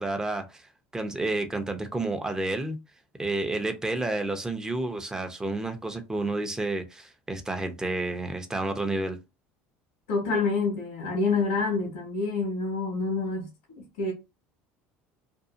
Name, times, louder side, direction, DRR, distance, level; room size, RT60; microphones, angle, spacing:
voice 1, 0.0-2.8 3.2-9.2, right 2 dB, 10° right, 0.7 m, -30 dB
voice 2, 10.1-13.5 13.8-14.1, left 4 dB, 80° left, 1.1 m, -27 dB
2.6 x 2.4 x 2.4 m
supercardioid pair, 100°, 5 cm